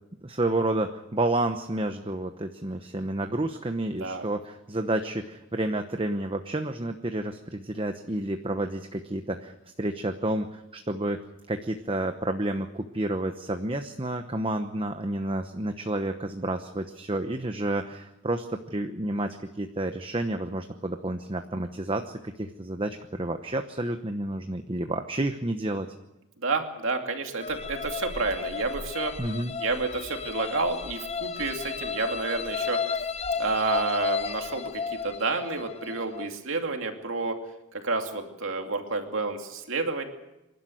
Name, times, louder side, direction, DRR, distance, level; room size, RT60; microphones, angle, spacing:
voice 1, 0.2-11.2 11.5-25.9 29.2-29.5, right 1 dB, 25° right, 6 dB, 0.9 m, -30 dB
voice 2, 26.4-29.1 29.6-32.8 33.4-37.4 37.7-40.0, right 3 dB, 60° right, 4 dB, 2.7 m, -30 dB
sound 1, 27.4-36.3, left 5 dB, 30° left, 0.8 m, -33 dB
26.5 x 12.0 x 9.3 m, 0.97 s
head